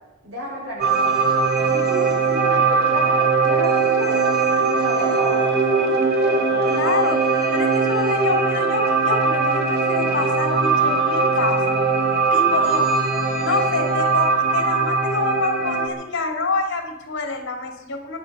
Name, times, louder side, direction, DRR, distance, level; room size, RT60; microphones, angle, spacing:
voice 1, 0.2-1.1 1.7-4.3 4.6-6.8, equal, 65° right, -6 dB, 7.0 m, -32 dB
sound 1, 0.8-15.9, right 4 dB, 50° right, 3.1 m, -20 dB
voice 2, 6.8-7.2 7.5-11.8 12.3-12.8 13.4-18.2, left 3 dB, 60° left, 4 dB, 3.2 m, -27 dB
24.0 x 9.5 x 5.6 m, 1.0 s
head